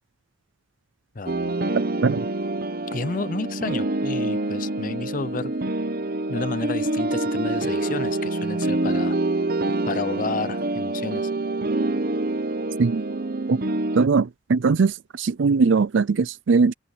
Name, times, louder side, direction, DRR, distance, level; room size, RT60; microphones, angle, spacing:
voice 1, 1.1-1.5 2.9-5.5 6.3-9.2 9.8-11.3, left 3 dB, 45° left, 0.6 m, -31 dB
sound 1, 1.3-14.1, right 2 dB, 50° right, 0.9 m, -26 dB
voice 2, 13.9-16.7, right 4 dB, 70° right, 0.5 m, -20 dB
head